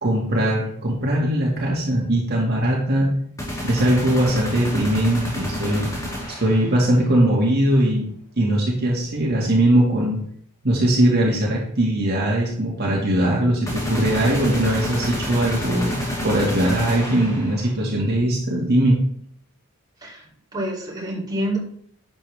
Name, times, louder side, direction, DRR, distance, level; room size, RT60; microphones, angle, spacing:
voice 1, 0.0-3.1 3.6-5.9 6.4-8.1 8.4-10.2 10.6-16.0 16.2-19.0, right 1 dB, 45° right, -4 dB, 2.1 m, -20 dB
sound 1, 3.4-6.7 13.7-17.7, equal, 15° left, 2.8 m, -29 dB
voice 2, 20.0-21.6, right 1 dB, 20° right, -6 dB, 3.1 m, -28 dB
11.5 x 7.5 x 3.5 m, 0.65 s
head